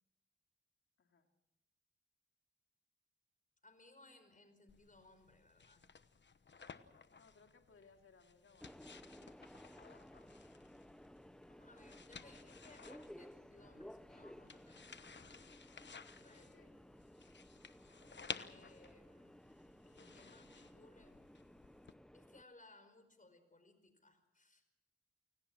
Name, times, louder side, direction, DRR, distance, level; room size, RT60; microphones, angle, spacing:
voice 1, 3.6-5.8 11.5-15.8 16.2-16.7 18.4-19.4 19.8-21.2 22.1-24.6, left 2 dB, 40° left, 9 dB, 5.0 m, -64 dB
sound 1, 4.7-21.9, left 5 dB, 60° left, 1.1 m, -55 dB
voice 2, 7.2-9.4 16.3-16.8, left 4 dB, 85° left, 4 dB, 2.7 m, -67 dB
Subway metro underground, 8.6-22.4, equal, 5° left, 0.9 m, -58 dB
28.5 x 18.0 x 6.1 m, 0.85 s
cardioid pair, 65°, 21 cm